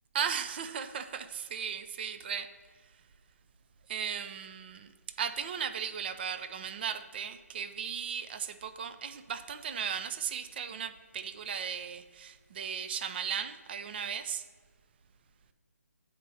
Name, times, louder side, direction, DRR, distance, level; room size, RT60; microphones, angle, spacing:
voice 1, 0.1-2.5 3.9-4.9 5.2-14.4, right 7 dB, 40° right, 9 dB, 0.5 m, -36 dB
8.3 x 4.4 x 6.3 m, 1.5 s
figure-of-eight pair, 150°, 9 cm